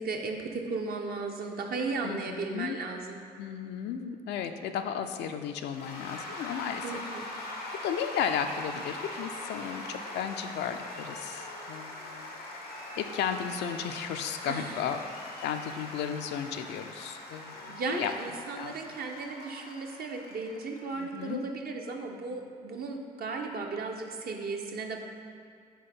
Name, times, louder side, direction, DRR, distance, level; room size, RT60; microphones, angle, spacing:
voice 1, 0.0-3.2 6.8-7.3 14.5-14.8 17.7-25.0, right 4 dB, 50° right, 2 dB, 0.8 m, -35 dB
voice 2, 2.0-2.8 3.4-7.0 7.8-12.4 13.0-15.0 15.4-18.1 18.6-18.9 20.9-21.4, left 8 dB, 65° left, 7 dB, 0.4 m, -34 dB
Cheering / Applause / Crowd, 5.7-21.3, left 2 dB, 90° left, 0.8 m, -42 dB
4.7 x 4.4 x 5.4 m, 2.2 s
hypercardioid pair, 45°, 19 cm